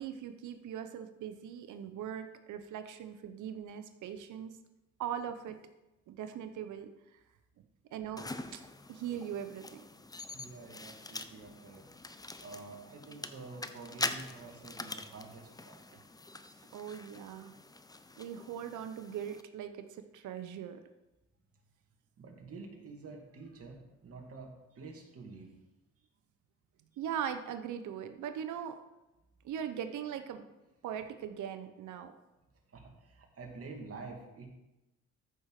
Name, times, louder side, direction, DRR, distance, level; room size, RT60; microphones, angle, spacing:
voice 1, 0.0-4.5 5.0-5.6 6.1-6.9 7.9-8.6 8.9-9.8 16.7-17.5 18.2-20.8 27.0-28.8 29.4-30.4 30.8-32.1, right 9 dB, 75° right, 8 dB, 0.9 m, -40 dB
voice 2, 8.0-8.4 10.3-11.8 12.4-15.8 22.2-25.6 32.7-34.5, right 3 dB, 50° right, 1 dB, 2.5 m, -48 dB
sound 1, 8.2-19.4, left 2 dB, 15° left, 0.7 m, -44 dB
14.0 x 5.9 x 4.9 m, 1.0 s
cardioid pair, 90°, 30 cm